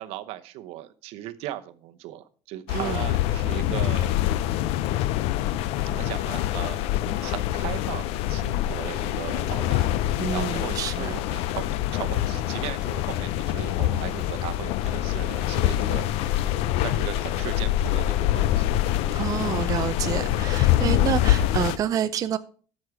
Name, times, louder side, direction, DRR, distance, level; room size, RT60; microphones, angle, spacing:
voice 1, 0.0-4.2 5.8-19.2, right 14 dB, 75° right, 0.8 m, -38 dB
sound 1, 2.7-21.8, left 13 dB, 80° left, 0.5 m, -25 dB
voice 2, 2.7-3.0 10.2-11.2 19.1-22.4, right 9 dB, 35° right, 0.4 m, -28 dB
13.0 x 6.4 x 4.7 m
cardioid pair, 155°, 10 cm